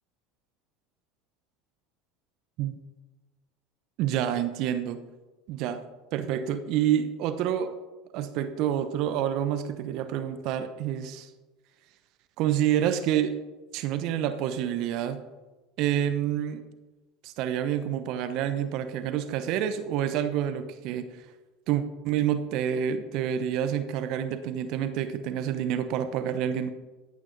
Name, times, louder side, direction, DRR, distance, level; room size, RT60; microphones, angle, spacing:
voice 1, 4.0-5.0 5.5-5.8 6.1-7.7 8.1-11.3 12.4-13.4 13.7-15.2 15.8-16.6 17.2-21.2 21.7-26.7, right 10 dB, 55° right, 10 dB, 1.0 m, -28 dB
14.5 x 9.3 x 4.1 m, 1.2 s
hypercardioid pair, 75°, 0 cm